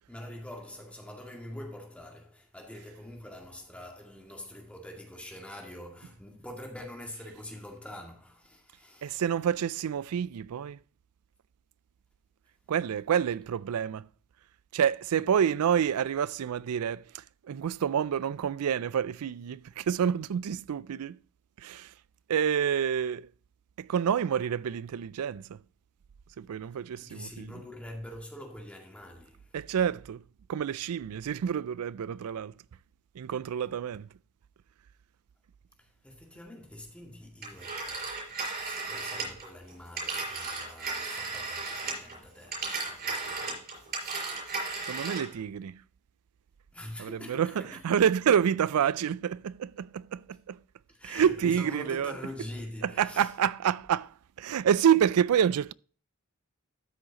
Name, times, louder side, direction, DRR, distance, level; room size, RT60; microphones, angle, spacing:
voice 1, 0.1-9.2 27.0-29.6 35.8-38.1 38.6-43.7 46.7-47.8 50.9-53.3, left 1 dB, 5° left, 2.1 m, -45 dB
voice 2, 9.0-10.8 12.7-14.1 14.7-21.2 21.6-21.9 22.3-23.3 23.8-25.6 26.4-27.5 29.5-30.2 30.5-32.5 33.1-34.1 44.4-44.5 44.9-45.8 47.0-50.6 51.0-52.1 52.8-55.7, right 8 dB, 85° right, 0.4 m, -28 dB
Telephone, 37.4-42.1 42.4-45.4, right 3 dB, 45° right, 4.9 m, -35 dB
13.0 x 6.3 x 2.9 m
head